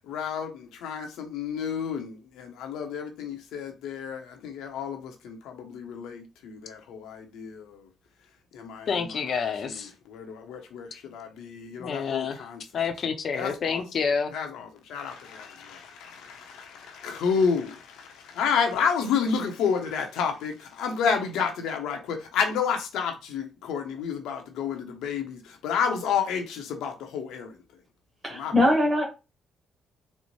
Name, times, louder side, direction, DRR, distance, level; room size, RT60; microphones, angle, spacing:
voice 1, 0.0-7.9 8.5-12.6 13.3-13.8 14.3-27.6 28.3-28.5, left 6 dB, 90° left, 0.8 m, -30 dB
voice 2, 8.9-9.9 11.8-12.5 12.7-14.3, left 6 dB, 55° left, 0.6 m, -28 dB
voice 3, 28.2-29.0, left 1 dB, 15° right, 1.5 m, -21 dB
4.3 x 2.1 x 3.1 m
cardioid pair, 90°, 0 cm